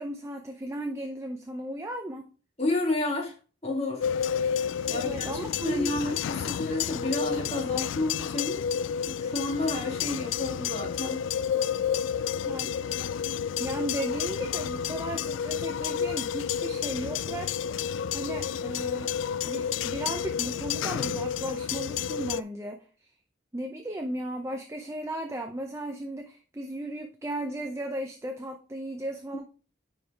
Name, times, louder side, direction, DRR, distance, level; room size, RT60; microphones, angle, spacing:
voice 1, 0.0-2.3 4.9-5.9 11.9-12.0 12.4-12.7 13.6-17.8 18.1-19.1 19.4-22.8 23.5-29.4, right 1 dB, 15° right, 0.6 m, -35 dB
voice 2, 2.6-3.3 3.6-4.0 4.9-5.4 5.6-8.6 9.1-11.2 29.3-29.4, left 2 dB, 30° left, 1.8 m, -30 dB
sound 1, 4.0-22.4, left 8 dB, 80° left, 0.3 m, -30 dB
10.0 x 4.8 x 3.4 m
head